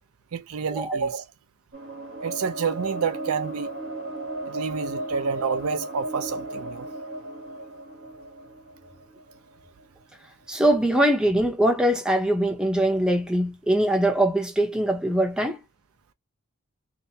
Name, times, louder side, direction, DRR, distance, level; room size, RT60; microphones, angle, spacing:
voice 1, 0.3-1.2 2.2-3.7 4.5-6.9, right 6 dB, 85° right, 0.5 m, -28 dB
sound 1, 1.7-9.8, right 1 dB, 65° right, 1.2 m, -35 dB
voice 2, 10.5-15.6, right 1 dB, 5° right, 0.7 m, -22 dB
2.8 x 2.1 x 2.7 m
head